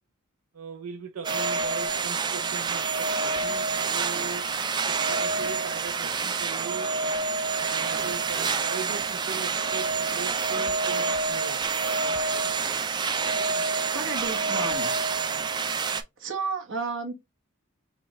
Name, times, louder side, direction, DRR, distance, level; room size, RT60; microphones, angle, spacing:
voice 1, 0.5-4.5 4.9-6.9 7.6-11.6, right 5 dB, 90° right, 0.6 m, -39 dB
sound 1, 1.2-16.0, right 4 dB, 20° right, 0.3 m, -27 dB
voice 2, 13.9-14.9 16.2-17.1, right 4 dB, 60° right, 1.3 m, -32 dB
4.9 x 2.4 x 3.1 m
head